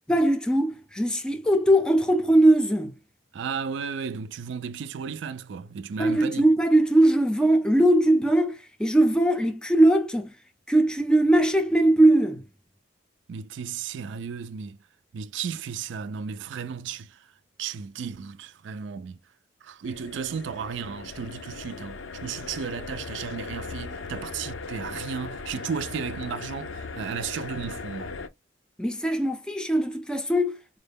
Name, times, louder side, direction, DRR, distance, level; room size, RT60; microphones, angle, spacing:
voice 1, 0.1-2.9 6.0-10.3 10.7-12.4 28.8-30.8, right 1 dB, 5° left, 0.4 m, -20 dB
voice 2, 3.3-6.5 13.3-14.8 15.1-17.2 17.6-19.2 19.6-28.1, right 6 dB, 65° right, 0.3 m, -34 dB
sound 1, 19.8-28.3, left 4 dB, 70° left, 0.5 m, -38 dB
4.6 x 2.1 x 3.3 m
head